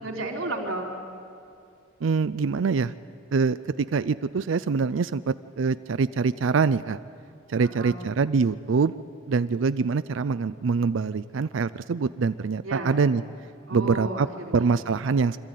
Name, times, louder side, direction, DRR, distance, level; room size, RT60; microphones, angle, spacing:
voice 1, 0.0-1.0 7.6-8.0 12.6-13.0 13.7-14.8, right 2 dB, 85° right, 1 dB, 3.6 m, -33 dB
voice 2, 2.0-2.9 3.3-7.0 7.5-8.9 9.3-13.2 13.7-14.3 14.5-15.4, right 5 dB, 65° right, 13 dB, 0.4 m, -24 dB
26.0 x 13.5 x 9.2 m, 2.4 s
head